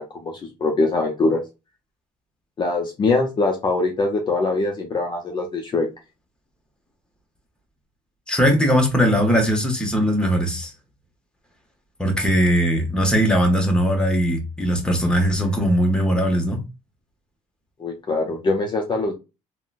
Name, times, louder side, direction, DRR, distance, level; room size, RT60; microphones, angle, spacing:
voice 1, 0.0-1.4 2.6-5.9 17.8-19.1, left 3 dB, 35° left, 0.6 m, -23 dB
voice 2, 8.3-10.7 12.0-16.6, equal, 5° left, 0.9 m, -20 dB
3.7 x 2.1 x 2.4 m
cardioid pair, 115°, 14 cm